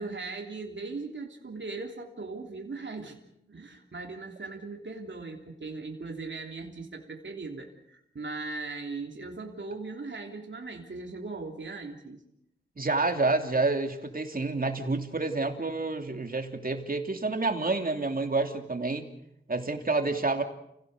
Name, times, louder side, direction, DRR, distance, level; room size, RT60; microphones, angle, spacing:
voice 1, 0.0-3.2 3.5-12.2, right 3 dB, 70° right, 2 dB, 3.2 m, -39 dB
voice 2, 12.8-19.1 19.5-20.4, right 3 dB, 45° right, 4 dB, 3.0 m, -28 dB
30.0 x 17.0 x 6.7 m, 0.79 s
wide cardioid pair, 65°, 20 cm